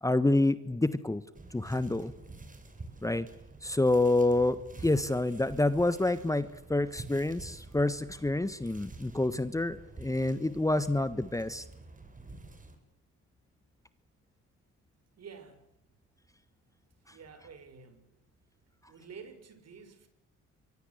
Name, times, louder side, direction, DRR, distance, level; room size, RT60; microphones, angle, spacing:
voice 1, 0.0-1.2 1.5-2.1 3.0-3.3 3.6-11.6 17.1-17.2, left 2 dB, 10° left, 13 dB, 1.4 m, -28 dB
sound 1, 1.3-12.7, right 3 dB, 25° right, 6.4 m, -49 dB
voice 2, 15.2-15.7 17.1-18.2 18.9-20.1, right 6 dB, 55° right, 10 dB, 6.1 m, -50 dB
27.5 x 24.5 x 8.2 m, 0.79 s
cardioid pair, 90°, 30 cm